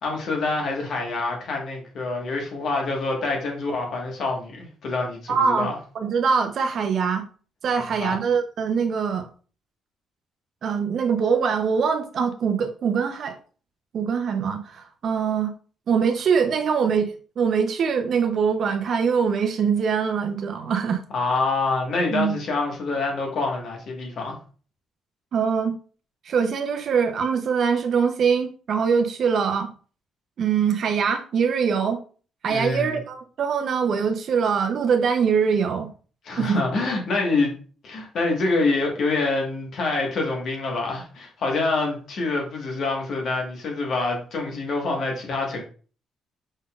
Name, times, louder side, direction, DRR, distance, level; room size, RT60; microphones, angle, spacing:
voice 1, 0.0-5.8 8.0-8.1 21.1-24.4 32.5-33.0 36.2-37.6 37.8-45.7, left 3 dB, 65° left, 1.5 m, -26 dB
voice 2, 5.3-5.7 5.9-7.2 7.6-9.3 10.6-13.4 13.9-15.5 15.9-21.0 22.1-22.3 25.3-25.8 26.2-29.7 30.4-32.0 32.4-35.9 36.4-36.6, right 6 dB, 60° right, 0.7 m, -23 dB
5.3 x 3.7 x 2.4 m
cardioid pair, 90°, 0 cm